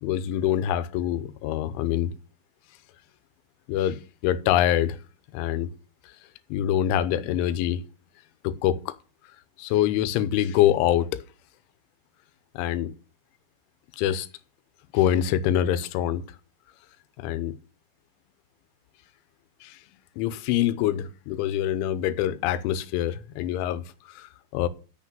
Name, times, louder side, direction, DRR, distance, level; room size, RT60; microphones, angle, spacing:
voice 1, 0.0-2.2 3.7-5.0 5.3-5.8 6.0-6.1 6.5-7.9 8.4-9.0 9.6-11.2 12.5-12.9 14.0-14.3 14.9-16.3 17.2-17.6 19.6-19.8 20.2-24.7, left 11 dB, 90° left, 3.3 m, -25 dB
8.3 x 6.9 x 7.3 m
omnidirectional pair, 5.3 m